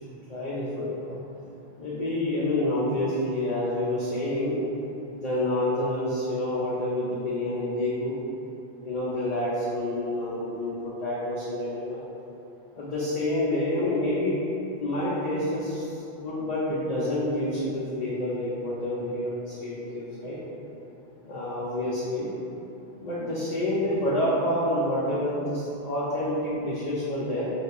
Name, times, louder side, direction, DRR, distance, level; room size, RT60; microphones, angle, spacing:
voice 1, 0.3-1.2 1.8-4.6 5.1-8.2 8.8-12.0 12.8-14.4 14.8-15.9 16.2-20.4 21.2-22.3 23.0-27.5, left 1 dB, 45° left, -8 dB, 0.6 m, -28 dB
3.1 x 2.8 x 4.5 m, 2.9 s
omnidirectional pair, 1.1 m